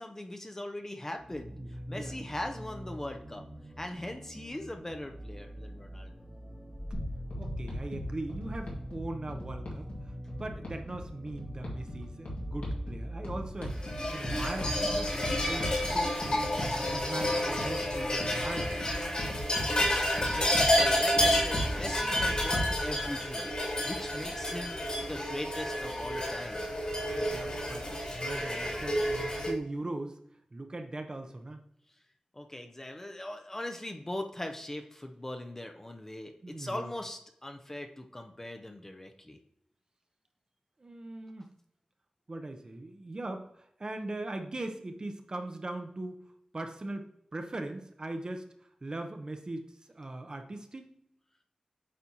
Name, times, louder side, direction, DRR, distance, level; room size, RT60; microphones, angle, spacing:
voice 1, 0.0-1.5 1.9-3.4 3.8-6.1 19.9-26.7 32.3-39.4, left 1 dB, 20° left, 5 dB, 0.6 m, -40 dB
sound 1, 1.2-15.9, equal, 5° right, 1.0 m, -44 dB
sound 2, 6.9-22.8, equal, 90° left, 1.8 m, -39 dB
voice 2, 7.4-9.9 10.4-16.1 16.5-18.7 22.0-22.2 22.7-22.8 27.1-30.2 30.5-31.6 36.4-36.9 40.8-41.5 42.3-46.2 46.5-48.5 48.8-50.9, right 2 dB, 40° right, 6 dB, 0.7 m, -40 dB
sound 3, 13.8-29.5, left 1 dB, 55° left, 2.5 m, -30 dB
8.3 x 4.1 x 2.9 m, 0.77 s
wide cardioid pair, 95°, 2 cm